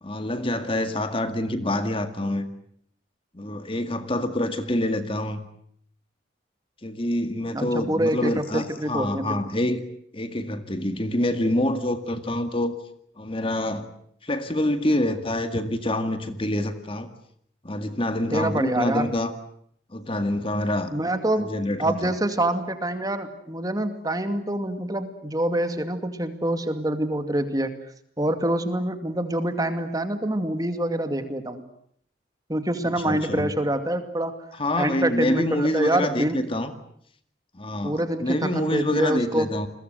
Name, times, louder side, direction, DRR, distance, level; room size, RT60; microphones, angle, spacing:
voice 1, 0.0-2.5 3.3-5.4 6.8-9.8 10.1-12.8 13.2-13.9 14.2-17.1 17.6-19.3 19.9-20.9 21.4-22.1 33.0-33.5 34.5-36.7 37.5-39.7, left 1 dB, 30° left, 9 dB, 2.0 m, -26 dB
voice 2, 7.5-9.4 18.3-19.1 20.9-21.5 21.8-27.7 28.2-31.6 32.5-34.3 34.8-36.4 37.8-39.5, right 1 dB, 20° right, 8 dB, 2.4 m, -26 dB
29.5 x 22.0 x 8.1 m, 0.67 s
head